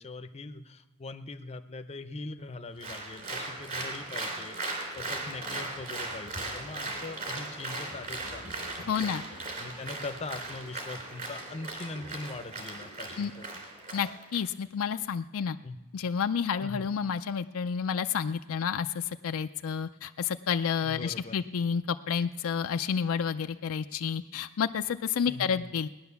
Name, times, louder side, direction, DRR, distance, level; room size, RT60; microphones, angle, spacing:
voice 1, 0.0-8.5 8.8-9.1 9.6-13.6 15.6-15.8 16.6-16.9 20.8-21.4 25.3-25.7, left 3 dB, 30° left, 8 dB, 0.6 m, -41 dB
Applause, 2.8-14.4, right 2 dB, 40° right, 3.1 m, -38 dB
voice 2, 8.9-9.2 13.2-13.3 13.9-15.6 15.9-25.9, left 7 dB, 65° left, 8 dB, 0.4 m, -30 dB
18.5 x 10.5 x 7.0 m, 1.1 s
head